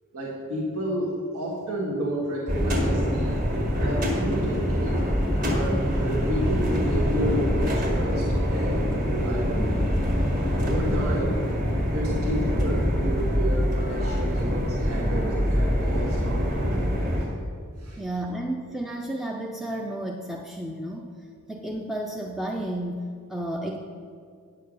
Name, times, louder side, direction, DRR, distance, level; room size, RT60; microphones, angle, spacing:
voice 1, 0.1-5.0 5.4-9.9 10.6-11.4 11.9-16.9 17.8-18.0, equal, 80° right, -4 dB, 1.5 m, -31 dB
sound 1, 2.5-17.2, equal, 35° right, 1.7 m, -24 dB
voice 2, 18.0-21.1 21.5-23.8, right 1 dB, ahead, 0 dB, 0.4 m, -32 dB
9.3 x 6.7 x 6.3 m, 2.3 s
head